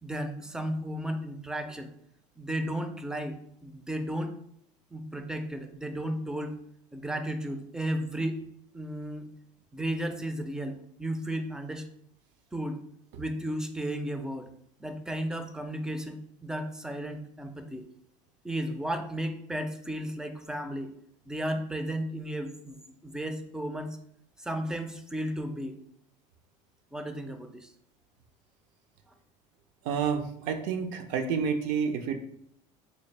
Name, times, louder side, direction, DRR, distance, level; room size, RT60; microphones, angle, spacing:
voice 1, 0.0-1.9 2.4-4.3 4.9-6.6 6.9-8.4 8.7-9.3 9.7-11.9 12.5-12.8 13.2-14.5 14.8-17.9 18.4-20.9 21.3-24.0 24.4-25.8 26.9-27.7, right 1 dB, 5° right, 7 dB, 0.3 m, -34 dB
voice 2, 29.8-32.2, right 6 dB, 75° right, 8 dB, 0.5 m, -29 dB
3.9 x 2.3 x 3.2 m, 0.73 s
cardioid pair, 125°, 14 cm